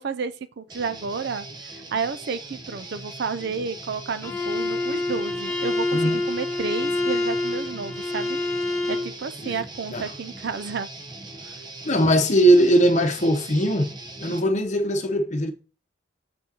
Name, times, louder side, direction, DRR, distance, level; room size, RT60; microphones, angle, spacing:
voice 1, 0.0-1.5 1.9-8.4 8.9-10.9 11.5-11.6 14.3-14.6, right 5 dB, 60° right, 0.4 m, -31 dB
Guitar, 0.7-14.4, right 2 dB, 20° right, 1.0 m, -40 dB
Bowed string instrument, 4.2-9.2, left 2 dB, 15° left, 1.5 m, -26 dB
voice 2, 5.9-6.2 9.4-9.6 9.9-10.1 11.8-13.9 14.2-15.5, right 1 dB, 40° left, 0.9 m, -20 dB
6.9 x 6.1 x 2.9 m
head